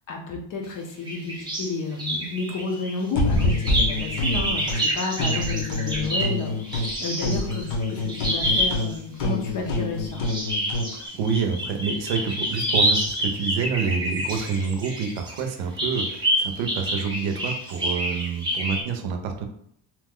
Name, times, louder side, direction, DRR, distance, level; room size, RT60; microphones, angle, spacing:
voice 1, 0.1-10.2, left 3 dB, 45° left, 2 dB, 0.5 m, -31 dB
sound 1, 1.1-1.7 2.0-9.0 10.1-15.4 15.8-18.8, equal, 10° right, 0.5 m, -27 dB
sound 2, 3.1-4.8 5.2-6.9 7.2-10.9, left 2 dB, 70° left, 0.9 m, -26 dB
voice 2, 11.1-19.4, right 5 dB, 75° right, 5 dB, 0.7 m, -27 dB
2.9 x 2.1 x 3.6 m, 0.68 s
cardioid pair, 175°, 48 cm